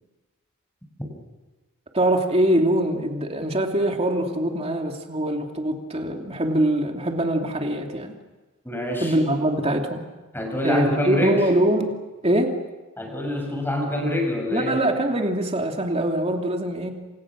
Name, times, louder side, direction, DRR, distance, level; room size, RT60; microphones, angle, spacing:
voice 1, 1.9-8.1 9.0-10.0 10.6-11.9 12.2-12.6 14.5-16.9, right 1 dB, 30° right, 3 dB, 2.8 m, -23 dB
voice 2, 8.6-9.2 10.3-11.4 13.0-14.8, left 1 dB, 10° left, 2 dB, 6.8 m, -26 dB
28.0 x 27.5 x 6.3 m, 1.2 s
head